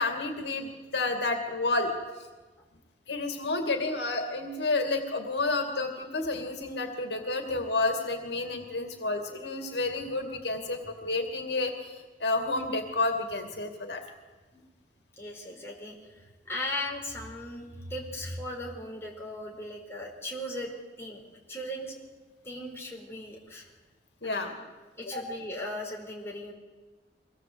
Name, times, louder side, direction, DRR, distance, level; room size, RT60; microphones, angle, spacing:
voice 1, 0.0-1.9 2.2-2.3 3.1-14.0 24.2-24.5 25.1-25.2, left 2 dB, 75° left, 4 dB, 2.6 m, -30 dB
voice 2, 15.2-16.0 16.4-20.7 21.0-21.2 21.5-21.9 22.4-23.7 24.2-24.5 25.0-26.5, left 1 dB, 15° left, -1 dB, 4.7 m, -37 dB
24.5 x 18.5 x 8.1 m, 1.3 s
head